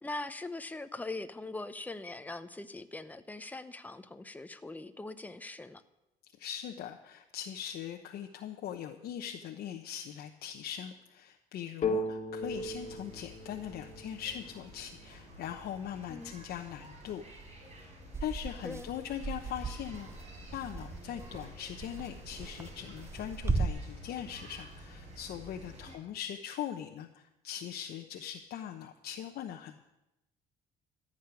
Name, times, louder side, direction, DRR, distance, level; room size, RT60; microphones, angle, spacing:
voice 1, 0.0-5.8 16.1-16.3 18.6-18.9 25.9-26.0, left 2 dB, 10° left, 10 dB, 0.8 m, -41 dB
voice 2, 6.4-17.2 17.6-17.7 18.2-20.1 20.5-29.9, left 10 dB, 70° left, 3 dB, 1.0 m, -41 dB
sound 1, 11.8-15.5, left 2 dB, 45° left, 1.7 m, -37 dB
sound 2, 12.4-26.0, right 1 dB, 45° right, 5.5 m, -51 dB
sound 3, 18.1-23.7, right 3 dB, 15° right, 1.0 m, -37 dB
14.0 x 6.6 x 9.7 m, 0.92 s
cardioid pair, 110°, 17 cm